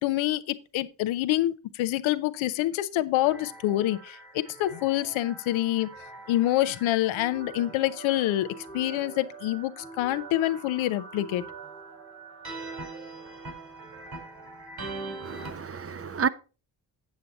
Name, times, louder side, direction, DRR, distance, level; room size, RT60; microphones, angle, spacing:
voice 1, 0.0-5.9 6.3-8.5 8.7-11.4, left 15 dB, 90° left, 0.7 m, -26 dB
sound 1, 3.2-15.5, right 3 dB, 50° right, 4.2 m, -43 dB
voice 2, 15.2-16.3, right 6 dB, 30° right, 0.7 m, -30 dB
8.3 x 7.6 x 4.1 m
supercardioid pair, 50°, 46 cm